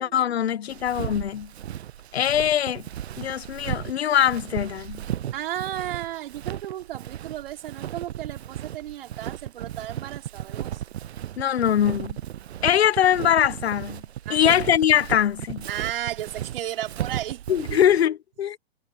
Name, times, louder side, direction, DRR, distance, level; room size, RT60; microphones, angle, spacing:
voice 1, 0.0-1.5 2.1-2.9 3.2-5.0 11.4-12.2 12.6-14.0 14.3-15.7 17.5-18.6, left 10 dB, 80° left, 1.1 m, -22 dB
Walk footsteps, 0.7-18.0, right 11 dB, 80° right, 0.7 m, -35 dB
voice 2, 5.3-10.8 14.2-14.6 15.7-17.4 17.7-17.8, right 12 dB, 60° right, 4.9 m, -34 dB
hypercardioid pair, 135°, 31 cm